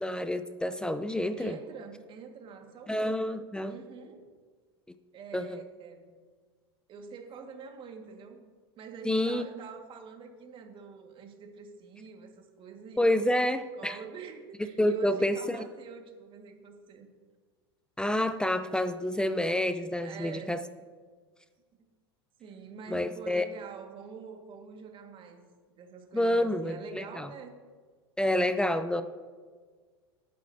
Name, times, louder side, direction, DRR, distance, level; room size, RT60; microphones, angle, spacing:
voice 1, 0.0-1.6 2.9-3.8 5.3-5.6 9.0-9.4 13.0-14.0 14.8-15.6 18.0-20.6 22.9-23.4 26.1-27.3 28.2-29.0, left 1 dB, 5° left, 11 dB, 0.5 m, -28 dB
voice 2, 1.4-3.2 3.7-4.3 5.1-6.1 6.9-8.4 8.8-13.1 13.8-17.1 20.0-20.6 22.4-25.5 25.8-27.6, right 6 dB, 40° right, 4 dB, 1.8 m, -46 dB
18.5 x 9.1 x 2.8 m, 1.5 s
hypercardioid pair, 90°, 13 cm